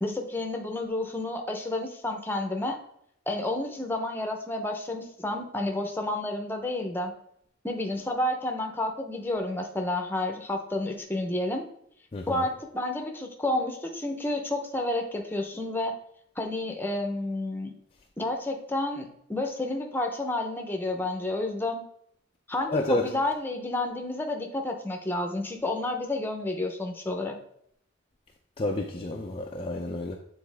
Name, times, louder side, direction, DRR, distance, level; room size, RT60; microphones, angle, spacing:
voice 1, 0.0-2.8 3.3-7.1 7.6-11.7 12.3-16.0 16.4-17.7 18.2-21.8 22.5-27.4, left 2 dB, 10° left, 0.9 m, -30 dB
voice 2, 12.1-12.4 22.7-23.1 28.6-30.2, left 2 dB, 25° left, 0.5 m, -30 dB
8.7 x 4.1 x 3.5 m
head